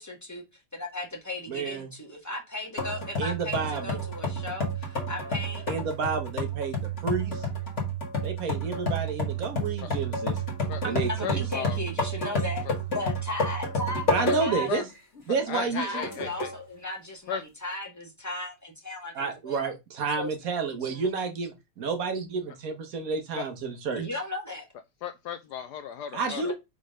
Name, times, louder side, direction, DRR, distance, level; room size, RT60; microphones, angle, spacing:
voice 1, 0.0-5.6 10.8-12.6 12.9-14.9 15.7-19.7 20.1-20.3 20.8-21.1 23.9-24.7 26.3-26.5, left 2 dB, 10° left, 1.2 m, -36 dB
voice 2, 1.5-1.9 3.2-4.1 5.7-7.4 8.2-10.4 10.8-11.4 14.1-14.8 15.3-16.3 19.1-24.0 26.1-26.5, right 5 dB, 50° right, 1.4 m, -30 dB
sound 1, 2.8-14.7 15.2-15.3 16.0-16.6, equal, 35° left, 1.8 m, -30 dB
voice 3, 11.2-11.8 14.2-14.4 14.7-14.8 15.5-16.5 17.3-17.4 23.4-23.5 25.0-26.5, left 8 dB, 80° left, 0.9 m, -35 dB
5.3 x 3.8 x 5.1 m
omnidirectional pair, 2.3 m